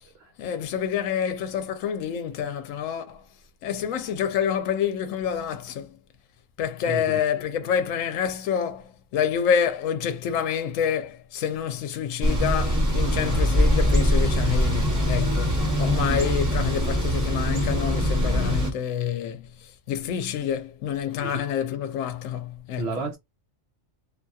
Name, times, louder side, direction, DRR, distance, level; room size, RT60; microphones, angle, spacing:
voice 1, 0.4-3.2 3.6-6.0 6.6-23.0, left 8 dB, 80° left, 1.0 m, -27 dB
voice 2, 6.9-7.2 21.2-21.4 22.8-23.2, right 4 dB, 60° right, 0.8 m, -32 dB
Thunder / Bicycle, 12.2-18.7, equal, 15° right, 0.9 m, -23 dB
2.6 x 2.6 x 2.3 m
omnidirectional pair, 1.3 m